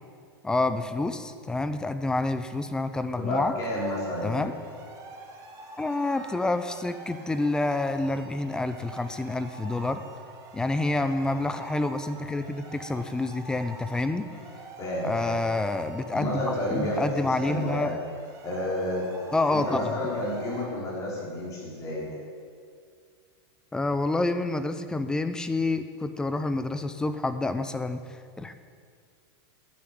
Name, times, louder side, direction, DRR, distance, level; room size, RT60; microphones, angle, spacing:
voice 1, 0.4-3.5 4.2-4.5 5.8-10.0 10.5-14.3 15.0-17.9 19.3-19.9 23.7-28.0 28.4-28.5, left 2 dB, 5° left, 10 dB, 0.6 m, -28 dB
voice 2, 3.2-4.4 10.9-11.1 14.8-15.4 16.1-17.9 18.4-19.1 19.5-22.2, left 1 dB, 25° left, -5 dB, 4.7 m, -31 dB
sound 1, 3.7-20.7, right 2 dB, 25° right, 1.7 m, -45 dB
11.5 x 10.5 x 9.3 m, 2.1 s
supercardioid pair, 160°, 13 cm